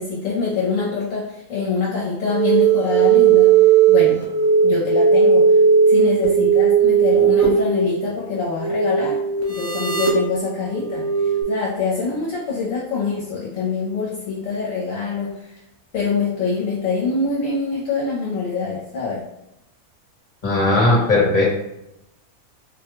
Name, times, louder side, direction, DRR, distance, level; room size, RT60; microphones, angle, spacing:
voice 1, 0.0-3.5 3.9-4.2 4.6-5.5 5.9-9.2 9.5-15.5 15.9-19.2, left 4 dB, 65° left, -6 dB, 1.1 m, -25 dB
sound 1, 2.2-11.4, right 7 dB, 15° right, 0.7 m, -17 dB
voice 2, 20.4-21.4, left 2 dB, 35° left, -4 dB, 1.3 m, -17 dB
3.9 x 2.3 x 3.0 m, 0.85 s
omnidirectional pair, 1.5 m